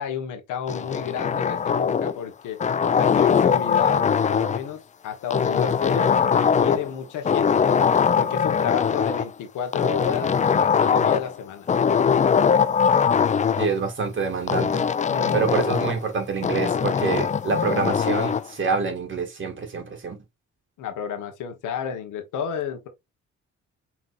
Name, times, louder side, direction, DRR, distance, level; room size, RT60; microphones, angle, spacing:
voice 1, 0.0-2.6 3.0-7.8 8.2-11.7 15.1-15.5 20.8-22.9, left 7 dB, 85° left, 1.3 m, -31 dB
sound 1, 0.7-2.2 2.6-4.7 5.3-6.9 7.2-9.3 9.7-11.3 11.7-13.7 14.5-16.0 16.4-18.5, left 6 dB, 25° left, 0.4 m, -21 dB
voice 2, 13.6-14.8 15.3-20.2, right 5 dB, 40° right, 2.1 m, -26 dB
5.9 x 3.2 x 2.5 m
cardioid pair, 90°, 30 cm